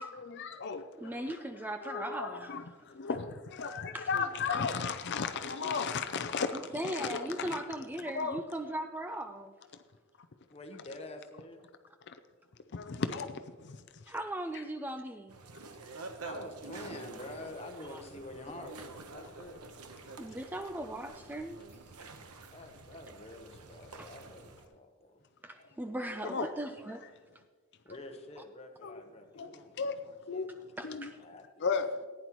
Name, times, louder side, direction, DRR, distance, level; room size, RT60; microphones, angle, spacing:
voice 1, 0.0-1.2 1.8-2.6 2.9-6.6 6.8-7.6 8.2-8.4 12.1-12.2 12.7-13.8 26.2-26.5 28.8-29.0 29.4-30.0 30.3-30.5 30.8-31.1 31.6-31.9, left 5 dB, 50° left, 0.5 m, -35 dB
voice 2, 1.0-2.6 3.6-4.1 4.6-4.7 6.5-9.5 14.1-15.4 17.9-18.0 18.6-18.7 20.2-21.6 24.0-24.1 25.4-27.0 27.3-27.4 30.8-31.2, right 1 dB, 10° right, 0.3 m, -39 dB
voice 3, 4.1-4.8 10.4-11.7 16.2-19.7 22.5-25.2 27.8-31.7, left 2 dB, 25° left, 1.0 m, -48 dB
sound 1, 15.3-24.7, right 3 dB, 90° right, 1.0 m, -48 dB
15.0 x 9.9 x 3.0 m
head